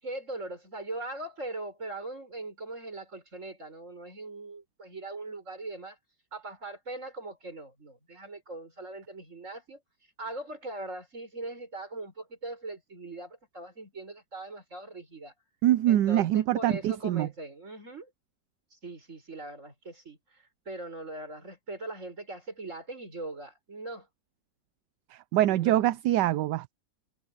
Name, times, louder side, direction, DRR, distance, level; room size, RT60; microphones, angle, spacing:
voice 1, 0.0-6.0 6.3-9.8 10.2-15.3 15.9-18.1 18.7-24.1 25.4-25.8, right 2 dB, 45° right, 6.1 m, -40 dB
voice 2, 15.6-17.3 25.1-26.7, right 13 dB, 80° right, 1.2 m, -24 dB
omnidirectional pair, 1.9 m